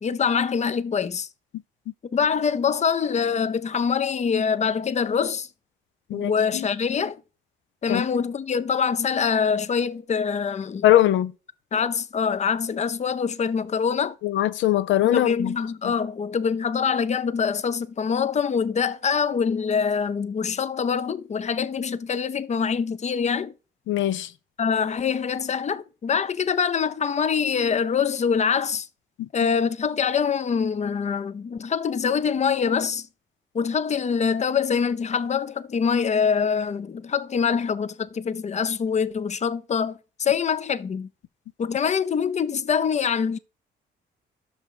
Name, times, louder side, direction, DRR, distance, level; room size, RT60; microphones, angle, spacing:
voice 1, 0.0-1.3 2.1-5.5 6.1-7.2 7.8-10.9 11.7-14.2 15.0-23.5 24.6-28.9 29.3-33.1 33.5-41.1 41.6-43.4, left 6 dB, 35° left, 0.6 m, -24 dB
voice 2, 6.1-6.7 7.9-8.0 10.8-11.3 14.2-15.5 23.9-24.3 29.2-29.3, left 13 dB, 75° left, 0.5 m, -21 dB
6.2 x 5.1 x 6.7 m
cardioid pair, 90°, 20 cm